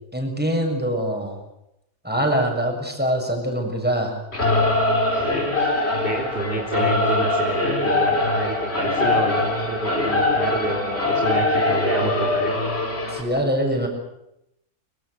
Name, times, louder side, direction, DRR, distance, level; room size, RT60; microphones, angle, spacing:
voice 1, 0.1-1.4 2.0-4.2 13.1-13.9, equal, 5° right, 2 dB, 7.0 m, -23 dB
Singing / Musical instrument, 4.3-13.2, left 2 dB, 40° left, 5.2 m, -22 dB
voice 2, 5.1-12.5 12.9-13.5, right 2 dB, 35° right, 0 dB, 4.1 m, -29 dB
25.0 x 25.0 x 8.1 m, 0.83 s
omnidirectional pair, 1.6 m